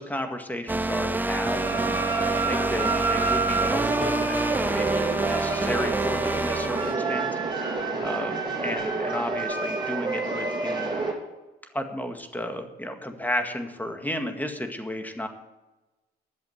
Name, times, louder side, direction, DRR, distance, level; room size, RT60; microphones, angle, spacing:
voice 1, 0.0-1.6 2.1-7.3 8.0-10.9 11.7-15.3, left 1 dB, 10° left, 5 dB, 2.0 m, -33 dB
sound 1, 0.7-7.0, right 2 dB, 10° right, 0.5 m, -28 dB
sound 2, 1.5-11.1, right 3 dB, 25° right, 3.6 m, -28 dB
11.0 x 7.6 x 8.1 m, 1.1 s
supercardioid pair, 70°, 19 cm